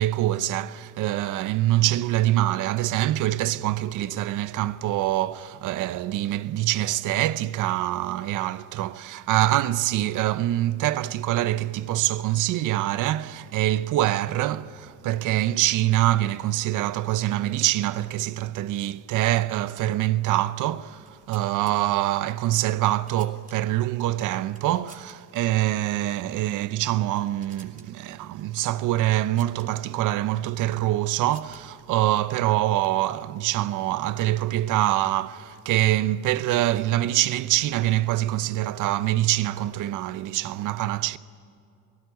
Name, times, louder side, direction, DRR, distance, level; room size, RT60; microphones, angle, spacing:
voice 1, 0.0-41.2, right 14 dB, 85° right, 0.7 m, -25 dB
sound 1, 20.9-21.7 22.6-23.9 24.5-25.2 25.4-25.6 26.3-26.6 26.9-27.9 29.1-29.7 30.7-31.8, right 3 dB, 25° right, 2.8 m, -53 dB
27.5 x 17.5 x 9.5 m
cardioid pair, 90°, 30 cm